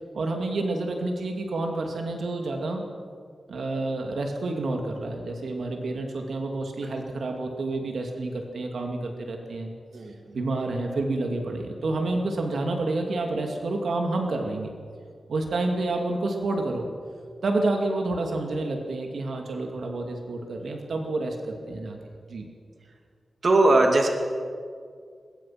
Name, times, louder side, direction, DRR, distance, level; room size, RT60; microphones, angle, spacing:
voice 1, 0.1-2.8 3.5-9.7 10.3-14.7 15.3-16.9 17.4-22.0 22.3-22.5, right 2 dB, 75° right, 3 dB, 2.6 m, -29 dB
voice 2, 9.9-10.3 23.4-24.1, right 2 dB, 55° right, 2 dB, 2.4 m, -20 dB
22.5 x 21.5 x 6.0 m, 2.1 s
wide cardioid pair, 120°, 0 cm